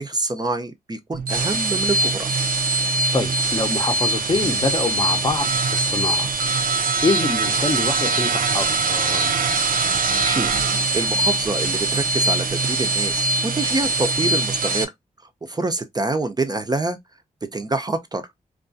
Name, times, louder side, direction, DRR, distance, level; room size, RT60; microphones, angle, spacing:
voice 1, 0.0-2.3 10.0-10.5 10.9-14.9 15.4-17.0 17.5-18.2, right 2 dB, 30° right, 0.5 m, -26 dB
sound 1, 1.1-14.8, right 3 dB, 80° right, 0.4 m, -22 dB
voice 2, 2.8-6.3 6.6-9.3, left 3 dB, 30° left, 0.6 m, -26 dB
2.3 x 2.3 x 2.5 m
cardioid pair, 65°, 14 cm